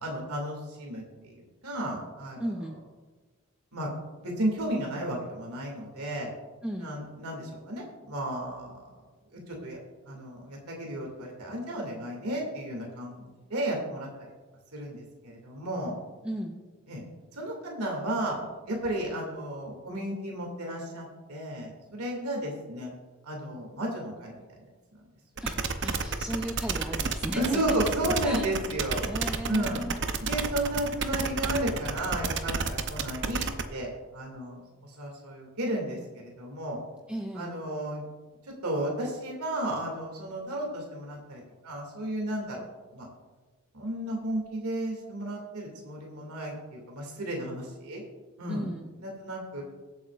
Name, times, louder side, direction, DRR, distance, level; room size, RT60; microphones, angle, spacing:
voice 1, 0.0-2.5 3.7-3.9 4.2-6.3 6.8-8.8 9.3-9.8 10.1-14.1 14.7-15.9 16.9-17.0 17.3-18.4 18.7-22.9 23.2-24.4 27.3-29.0 29.5-29.8 30.2-36.8 37.3-38.0 38.6-42.6 42.9-43.1 43.7-48.0 48.4-48.7 49.0-49.6, right 1 dB, 90° right, -1 dB, 2.4 m, -33 dB
voice 2, 2.4-2.8 6.6-6.9 16.2-16.6 25.4-27.8 28.2-28.5 29.1-30.0 37.1-37.5 48.5-48.9, equal, 5° right, 1 dB, 0.6 m, -35 dB
sound 1, 25.4-33.6, right 5 dB, 50° right, 0.7 m, -30 dB
22.0 x 8.4 x 2.5 m, 1.3 s
head